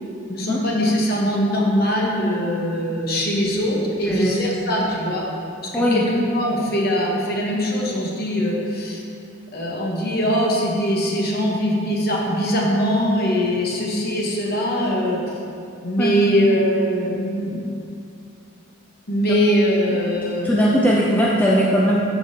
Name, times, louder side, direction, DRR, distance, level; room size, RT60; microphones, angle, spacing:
voice 1, 0.3-5.2 5.6-9.0 9.5-15.2 15.8-17.6 19.1-20.6, equal, 45° left, -2 dB, 1.1 m, -22 dB
voice 2, 5.7-6.0 16.0-16.1 19.9-22.0, equal, 10° left, -5 dB, 0.5 m, -19 dB
12.0 x 5.0 x 2.9 m, 2.5 s
head